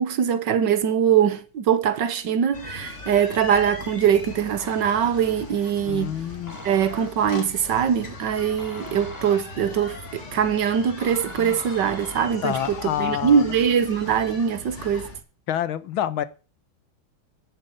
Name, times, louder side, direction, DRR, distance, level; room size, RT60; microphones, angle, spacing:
voice 1, 0.0-6.2 6.6-12.6 13.0-15.1, right 8 dB, 65° right, 1.7 m, -22 dB
sound 1, 2.5-15.2, left 3 dB, 35° left, 2.4 m, -39 dB
sound 2, 4.6-5.3 6.5-7.4 8.6-9.8 11.0-12.7, left 1 dB, 10° left, 1.4 m, -43 dB
voice 2, 5.8-6.6 11.4-11.6 12.4-13.5 15.5-16.2, left 10 dB, 85° left, 1.8 m, -27 dB
10.0 x 8.1 x 8.0 m
omnidirectional pair, 2.2 m